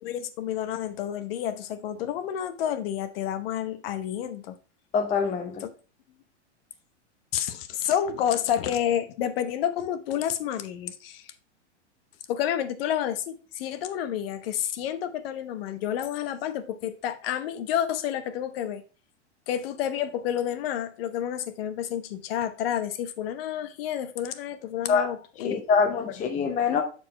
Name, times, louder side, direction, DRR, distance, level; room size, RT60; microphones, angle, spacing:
voice 1, 0.0-4.6 5.6-5.7 7.3-11.3 12.3-18.8 19.5-25.6, left 10 dB, 55° left, 1.0 m, -30 dB
voice 2, 4.9-5.6 24.9-25.1 25.4-26.8, left 5 dB, 20° left, 0.7 m, -24 dB
7.6 x 4.4 x 4.2 m
hypercardioid pair, 115°, 35 cm